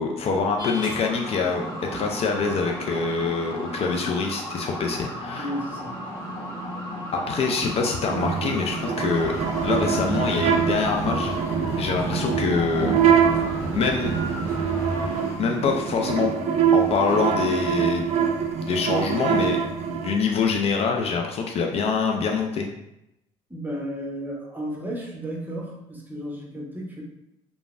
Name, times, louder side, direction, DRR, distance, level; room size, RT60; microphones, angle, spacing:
voice 1, 0.0-1.6 1.9-5.5 7.1-9.3 9.6-11.4 11.8-13.0 13.7-14.1 15.4-16.3 16.7-18.1 18.6-19.6 19.9-22.7, left 5 dB, 50° left, 2 dB, 0.4 m, -25 dB
sound 1, 0.6-15.4, equal, 30° left, 1.2 m, -35 dB
voice 2, 5.4-6.0 23.5-27.0, equal, 15° right, -2 dB, 0.8 m, -33 dB
sound 2, 8.1-20.2, right 7 dB, 55° right, 0.4 m, -24 dB
sound 3, 9.1-15.1, right 1 dB, 65° left, 0.9 m, -34 dB
3.2 x 2.1 x 2.4 m, 0.86 s
supercardioid pair, 75°, 13 cm